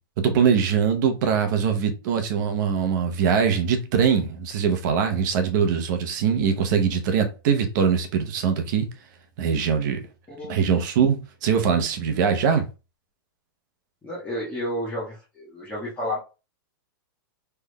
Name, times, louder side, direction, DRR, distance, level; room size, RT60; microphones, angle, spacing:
voice 1, 0.2-8.9 9.4-10.0 10.5-12.7, right 7 dB, 55° right, 0.8 m, -22 dB
voice 2, 10.3-10.6 14.0-16.2, left 1 dB, 15° left, 1.3 m, -31 dB
3.7 x 3.3 x 2.2 m
supercardioid pair, 145°, 12 cm